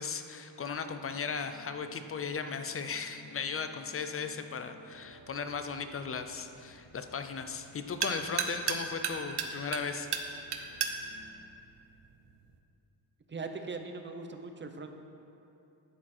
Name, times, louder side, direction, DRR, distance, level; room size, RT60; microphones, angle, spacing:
voice 1, 0.0-10.1, left 5 dB, 30° left, 8 dB, 0.5 m, -37 dB
sound 1, 0.8-11.3, left 1 dB, 60° left, 1.8 m, -58 dB
sound 2, 4.9-12.6, right 6 dB, 60° right, 0.9 m, -38 dB
voice 2, 13.3-15.0, right 4 dB, 25° right, 5 dB, 0.7 m, -40 dB
12.0 x 8.7 x 4.3 m, 2.7 s
wide cardioid pair, 160°, 44 cm